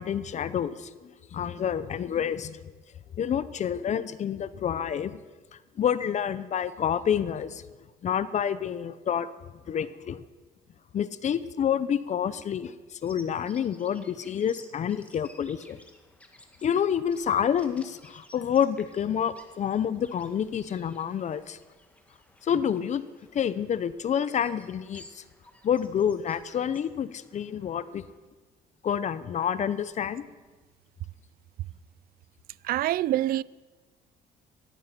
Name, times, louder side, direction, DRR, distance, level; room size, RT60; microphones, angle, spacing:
voice 1, 0.0-2.6 3.2-5.2 5.8-7.6 8.0-9.3 9.7-10.2 10.9-15.8 16.6-21.6 22.4-23.0 23.3-25.2 25.6-28.0 28.8-30.2, left 8 dB, 45° left, 0.8 m, -28 dB
Bird vocalization bird call bird song, 13.0-28.2, left 1 dB, 10° left, 2.1 m, -56 dB
voice 2, 32.6-33.4, right 14 dB, 60° right, 0.4 m, -25 dB
17.0 x 14.0 x 5.9 m
cardioid pair, 110°, 17 cm